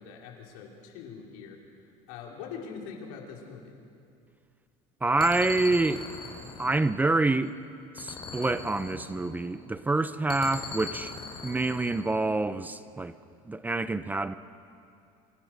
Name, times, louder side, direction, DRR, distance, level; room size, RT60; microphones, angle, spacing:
voice 1, 0.0-1.6 2.1-3.8, left 6 dB, 85° left, 5.0 m, -43 dB
voice 2, 5.0-6.1 6.6-7.5 7.9-11.1 11.4-13.1 13.5-14.3, right 2 dB, 10° right, 0.7 m, -27 dB
sound 1, 5.2-7.5 8.0-9.6 10.3-12.2, left 4 dB, 30° left, 6.0 m, -41 dB
29.5 x 26.5 x 6.6 m
cardioid pair, 140°, 17 cm